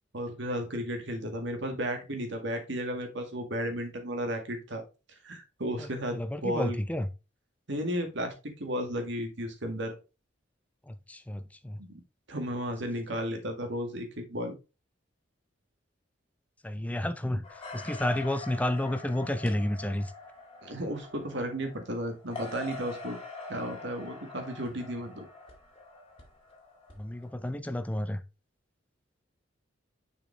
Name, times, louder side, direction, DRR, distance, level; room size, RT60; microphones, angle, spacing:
voice 1, 0.1-4.8 5.2-6.8 7.7-9.9 11.8-11.9 12.3-14.6 20.6-23.2 23.5-25.2, equal, 65° right, 1.9 m, -34 dB
voice 2, 5.8-7.1 10.9-11.8 16.6-20.1 27.0-28.2, left 1 dB, 10° left, 0.5 m, -31 dB
sound 1, 17.4-27.3, left 3 dB, 30° left, 2.0 m, -44 dB
6.6 x 5.2 x 3.3 m
head